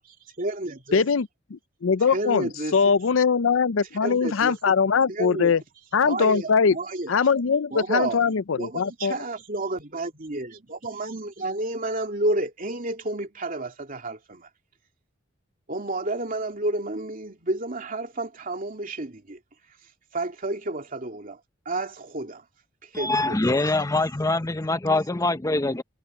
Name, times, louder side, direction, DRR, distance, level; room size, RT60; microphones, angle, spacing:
voice 1, 0.4-1.0 2.1-2.8 4.0-4.6 5.1-5.5 6.0-7.1 7.7-8.3 8.6-14.5 15.7-19.4 20.1-21.4 21.6-22.4 22.8-23.4, right 2 dB, 45° right, 2.7 m, -30 dB
voice 2, 0.9-5.6 5.9-6.8 7.1-9.1, left 5 dB, 80° left, 0.5 m, -22 dB
voice 3, 22.9-25.8, left 2 dB, 15° left, 0.6 m, -24 dB
head